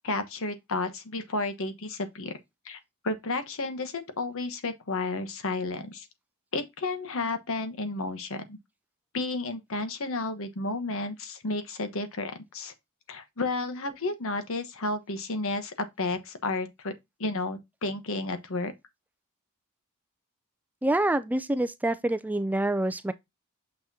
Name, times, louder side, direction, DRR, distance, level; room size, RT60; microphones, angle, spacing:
voice 1, 0.0-2.4 2.6-2.8 3.0-6.1 6.5-8.6 9.1-12.7 13.1-16.9 17.2-18.7, left 2 dB, 65° left, 1.1 m, -32 dB
voice 2, 20.8-23.1, right 1 dB, 5° right, 0.4 m, -26 dB
6.6 x 5.9 x 2.7 m
head